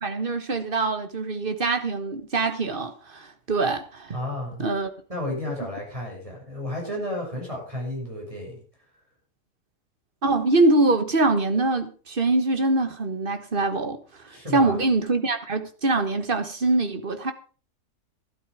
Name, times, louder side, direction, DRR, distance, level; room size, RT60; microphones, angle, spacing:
voice 1, 0.0-4.1 4.6-4.9 10.2-14.0 14.3-17.3, right 2 dB, 35° right, 1.6 m, -24 dB
voice 2, 4.1-4.6 5.1-8.6 14.3-14.8, left 1 dB, 20° right, 6.4 m, -32 dB
12.5 x 12.0 x 4.9 m
omnidirectional pair, 1.6 m